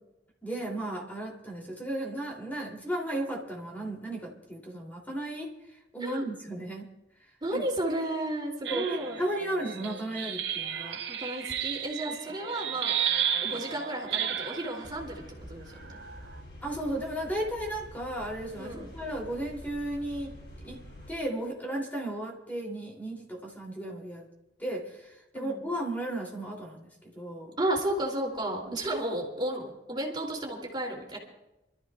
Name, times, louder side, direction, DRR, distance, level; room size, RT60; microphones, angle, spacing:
voice 1, 0.4-5.5 5.9-6.9 7.5-7.7 8.7-11.0 12.1-12.2 16.6-20.3 20.6-20.8 21.1-24.3 24.6-26.9 27.1-27.6 28.6-28.8, right 1 dB, 10° left, -2 dB, 3.1 m, -35 dB
voice 2, 7.4-9.2 11.1-15.2 15.5-16.0 18.6-18.9 25.3-25.7 27.6-31.2, right 1 dB, 25° right, -2 dB, 3.1 m, -33 dB
sound 1, 8.6-14.9 15.7-16.3, right 9 dB, 85° right, 0.8 m, -33 dB
sound 2, 14.8-21.1, equal, 70° left, 6.5 m, -47 dB
28.5 x 13.5 x 2.5 m, 0.94 s
head